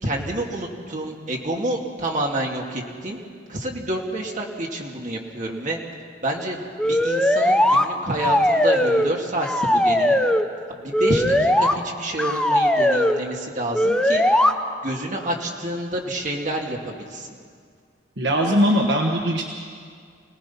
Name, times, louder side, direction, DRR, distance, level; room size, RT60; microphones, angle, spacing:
voice 1, 0.0-3.2 3.5-5.8 6.2-10.2 10.7-14.2 14.8-17.3, right 1 dB, 45° right, 0 dB, 2.5 m, -28 dB
sound 1, 6.8-7.9 8.2-9.1 9.4-10.5 10.9-11.7 12.2-13.2 13.7-14.5, left 1 dB, 5° left, 0.7 m, -19 dB
voice 2, 18.2-19.4, equal, 65° right, 1 dB, 1.5 m, -20 dB
26.5 x 18.5 x 5.8 m, 2.1 s
head